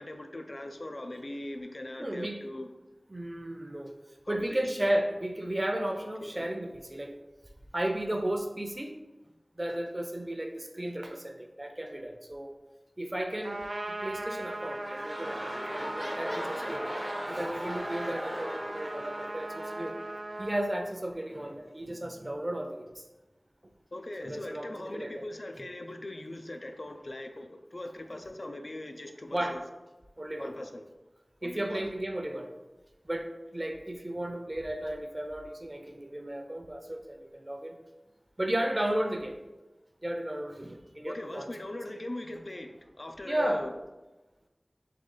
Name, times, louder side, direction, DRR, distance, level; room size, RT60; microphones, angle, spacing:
voice 1, 0.0-2.7 4.2-4.9 6.2-6.5 23.9-29.6 30.4-30.8 31.4-31.9 41.0-43.7, left 1 dB, 60° left, 6 dB, 0.4 m, -40 dB
voice 2, 2.0-2.4 3.1-3.9 4.3-7.1 7.7-9.0 9.6-12.5 13.0-16.9 17.3-20.0 20.4-23.0 24.2-25.2 29.3-29.6 30.2-30.5 31.4-32.5 33.0-37.8 38.4-39.4 40.0-41.5 43.2-43.7, right 1 dB, 35° right, 4 dB, 0.6 m, -34 dB
Trumpet, 13.4-20.7, right 1 dB, 80° right, 0.5 m, -38 dB
sound 1, 14.4-20.8 21.4-21.5, equal, 10° left, 0.5 m, -39 dB
3.8 x 3.1 x 3.8 m, 1.1 s
wide cardioid pair, 40°, 0 cm